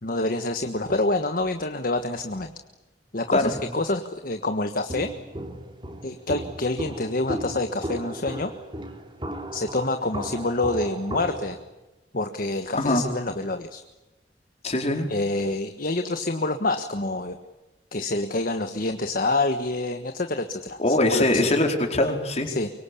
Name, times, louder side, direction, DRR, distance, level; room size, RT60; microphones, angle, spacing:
voice 1, 0.0-2.5 3.1-5.1 6.0-8.5 9.5-11.6 12.1-13.8 15.1-17.4 17.9-21.5 22.5-22.7, left 2 dB, 55° left, 7 dB, 1.4 m, -27 dB
Walk footsteps, 4.9-11.6, right 1 dB, 30° right, 3.4 m, -35 dB
voice 2, 14.6-15.1 20.8-22.5, left 1 dB, 40° left, 3 dB, 4.7 m, -22 dB
24.0 x 24.0 x 8.6 m, 1.1 s
head